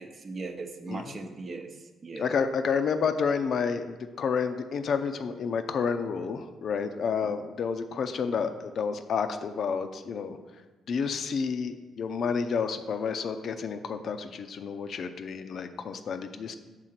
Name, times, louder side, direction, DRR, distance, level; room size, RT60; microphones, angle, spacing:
voice 1, 0.0-2.3, right 3 dB, 45° right, 5 dB, 0.8 m, -39 dB
voice 2, 0.9-1.2 2.2-10.4 10.9-16.6, left 6 dB, 60° left, 9 dB, 0.5 m, -30 dB
6.5 x 3.7 x 5.8 m, 1.2 s
cardioid pair, 90°, 0 cm